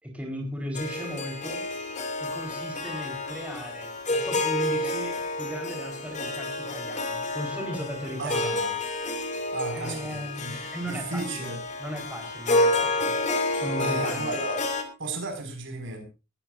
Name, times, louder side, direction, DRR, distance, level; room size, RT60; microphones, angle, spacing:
voice 1, 0.0-1.6 2.2-8.7 9.7-11.5 11.8-14.3, equal, 5° right, 1 dB, 4.0 m, -36 dB
Harp, 0.7-14.8, left 2 dB, 35° left, 2.5 m, -29 dB
voice 2, 8.2-8.8 9.5-10.6 10.9-11.6 13.8-14.7 15.0-16.1, right 3 dB, 65° right, 5 dB, 5.4 m, -34 dB
20.5 x 14.0 x 2.6 m, 0.29 s
head